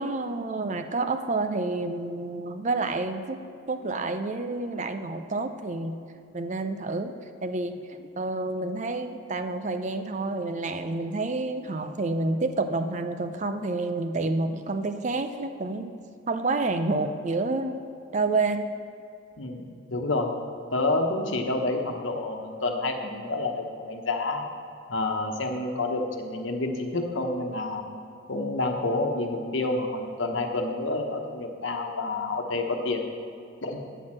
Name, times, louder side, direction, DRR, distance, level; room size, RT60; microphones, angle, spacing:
voice 1, 0.0-3.4 3.7-6.0 6.3-7.2 7.4-15.9 16.3-17.8 18.1-18.7, right 3 dB, 40° right, 8 dB, 0.5 m, -29 dB
voice 2, 19.4-20.3 20.7-24.5 24.9-27.8 28.3-33.0 33.6-33.8, left 2 dB, 85° left, 3 dB, 1.1 m, -28 dB
9.2 x 6.3 x 7.5 m, 2.5 s
head